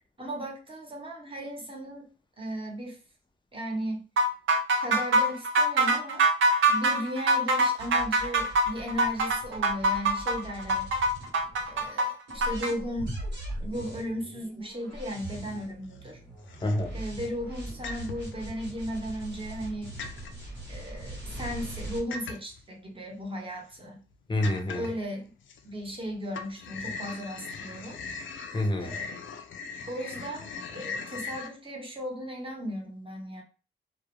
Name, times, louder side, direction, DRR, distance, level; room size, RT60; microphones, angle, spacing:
voice 1, 0.2-2.1 2.4-3.0 3.5-4.0 4.8-6.3 6.7-10.9 11.7-13.2 13.6-16.2 16.9-20.0 20.7-24.0 24.7-25.3 25.6-28.0 28.8-29.1 29.9-33.4, equal, 25° right, 0.9 m, -36 dB
sound 1, 4.2-12.7, right 2 dB, 80° right, 0.5 m, -24 dB
sound 2, 7.8-11.8 12.3-22.0, right 1 dB, 65° right, 1.0 m, -41 dB
sound 3, 15.6-16.1 16.5-17.1 17.8-18.4 19.0-19.7 20.0-20.4 22.1-22.6 23.2-23.3 23.7-23.8 24.4-25.0 25.5-26.0 26.3-31.5, left 4 dB, 75° left, 0.4 m, -39 dB
voice 2, 16.6-17.0 24.3-24.9 28.5-29.0, left 1 dB, 25° left, 0.6 m, -27 dB
2.3 x 2.1 x 3.0 m
cardioid pair, 70°, 20 cm